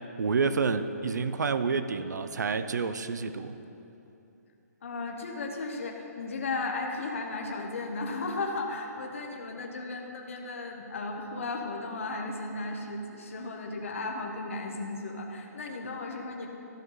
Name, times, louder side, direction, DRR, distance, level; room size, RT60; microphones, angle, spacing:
voice 1, 0.2-3.5, right 5 dB, 90° right, 11 dB, 0.6 m, -29 dB
voice 2, 4.8-16.5, left 3 dB, 50° left, 1 dB, 1.0 m, -35 dB
13.0 x 5.8 x 5.6 m, 2.9 s
hypercardioid pair, 175°, 9 cm